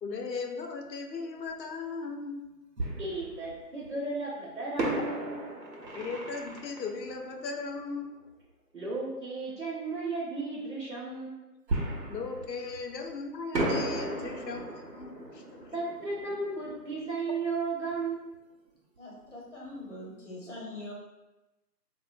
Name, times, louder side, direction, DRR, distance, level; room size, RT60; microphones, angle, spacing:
voice 1, 0.0-2.4 5.9-8.1 12.1-15.6, left 4 dB, 85° left, 4 dB, 0.6 m, -37 dB
Fireworks, 1.5-1.6 2.8-3.9 4.8-8.2 11.7-13.1 13.5-18.1 18.3-18.4 19.0-19.2, right 1 dB, 85° right, 0.7 m, -36 dB
voice 2, 3.0-5.4 8.7-11.4 15.7-18.5, right 3 dB, 55° right, -7 dB, 0.6 m, -34 dB
voice 3, 19.0-20.9, left 1 dB, 45° left, -4 dB, 0.8 m, -42 dB
2.8 x 2.0 x 2.4 m, 1.0 s
figure-of-eight pair, 165°, 49 cm